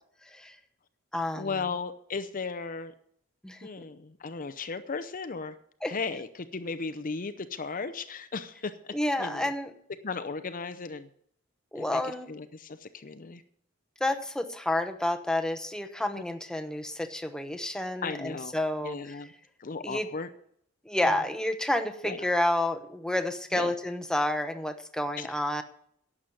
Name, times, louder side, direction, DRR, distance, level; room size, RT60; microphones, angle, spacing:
voice 1, 0.2-0.6 1.1-1.6 3.4-3.9 5.8-5.9 8.9-9.7 11.7-12.3 14.0-19.2 19.8-20.1 20.8-25.6, left 1 dB, 5° left, 7 dB, 0.9 m, -30 dB
voice 2, 1.4-2.9 3.6-5.6 5.9-9.5 10.0-11.1 11.7-12.0 12.3-13.4 16.1-16.2 18.0-18.6 18.8-19.3 19.6-20.3 21.0-21.1 22.0-22.2 23.5-23.7 25.2-25.3, left 4 dB, 40° left, 10 dB, 0.7 m, -36 dB
11.5 x 7.4 x 8.9 m, 0.65 s
head